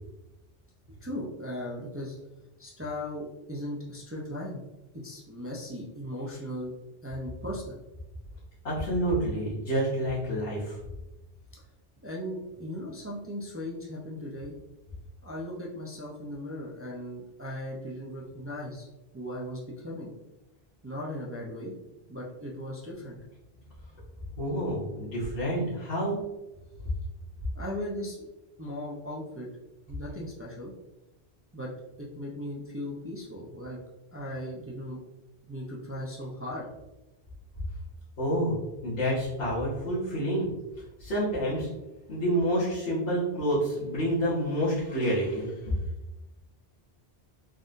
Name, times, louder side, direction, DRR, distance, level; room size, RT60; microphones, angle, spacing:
voice 1, 0.9-2.2 2.6-4.6 5.0-6.7 7.0-7.8 11.5-11.6 12.0-14.6 15.2-18.9 19.1-20.1 20.8-21.7 22.1-23.2 27.5-28.3 28.6-29.5 29.9-30.7 31.5-31.7 32.0-33.8 34.1-35.0 35.5-36.9, left 1 dB, 20° right, -4 dB, 0.4 m, -37 dB
voice 2, 8.6-10.8 24.3-26.2 38.2-38.5 38.8-40.5 41.0-41.7 42.1-45.7, equal, 80° left, -11 dB, 1.5 m, -28 dB
4.1 x 3.6 x 2.5 m, 1.0 s
omnidirectional pair, 1.0 m